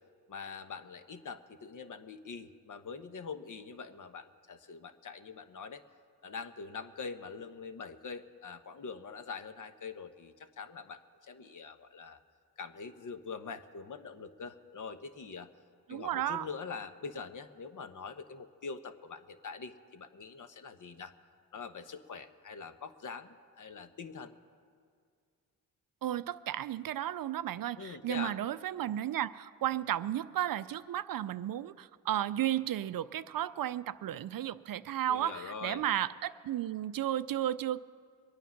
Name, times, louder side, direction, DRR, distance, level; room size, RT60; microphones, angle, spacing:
voice 1, 0.3-5.8 6.2-12.2 12.6-15.5 15.9-21.1 21.5-24.3 27.8-28.4 35.1-35.8, left 5 dB, 45° left, 10 dB, 1.1 m, -44 dB
voice 2, 15.9-16.5 26.0-37.8, right 12 dB, 55° right, 14 dB, 0.5 m, -33 dB
22.5 x 9.2 x 5.8 m, 2.2 s
supercardioid pair, 55°, 42 cm